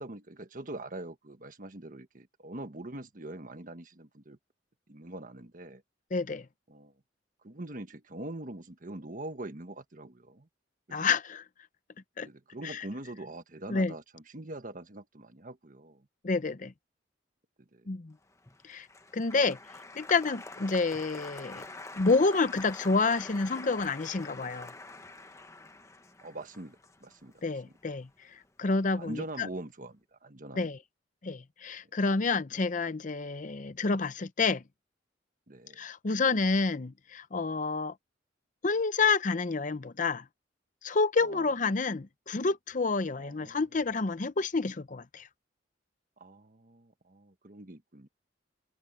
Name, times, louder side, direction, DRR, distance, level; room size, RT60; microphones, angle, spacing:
voice 1, 0.0-4.4 4.9-5.8 6.7-6.9 7.4-10.5 10.9-11.1 12.2-16.1 17.7-17.9 26.2-27.7 28.9-30.7 31.8-31.9 35.5-35.8 41.2-41.5 43.2-43.6 46.2-48.1, right 1 dB, 45° right, 1.4 m, -43 dB
voice 2, 6.1-6.5 10.9-11.4 12.2-12.3 12.6-12.8 13.7-13.9 16.2-16.7 17.9-18.1 18.6-18.9 19.1-19.6 20.0-21.6 22.0-24.7 27.4-29.5 30.5-30.8 31.2-34.6 35.8-37.9 38.6-40.2 40.8-45.3, left 4 dB, 40° left, 0.7 m, -29 dB
Applause, 18.3-28.7 29.0-29.6, left 2 dB, 15° left, 1.2 m, -46 dB
head